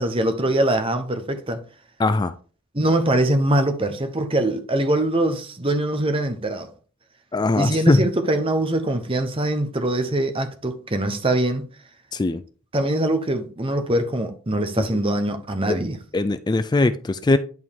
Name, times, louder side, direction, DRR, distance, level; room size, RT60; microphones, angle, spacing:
voice 1, 0.0-1.6 2.7-6.7 7.5-11.7 12.7-16.0, right 1 dB, 25° right, 0.9 m, -23 dB
voice 2, 2.0-2.3 7.3-8.0 12.1-12.4 14.8-14.9 15.7-15.8 16.1-17.4, left 2 dB, 20° left, 0.3 m, -20 dB
10.5 x 4.6 x 3.6 m
head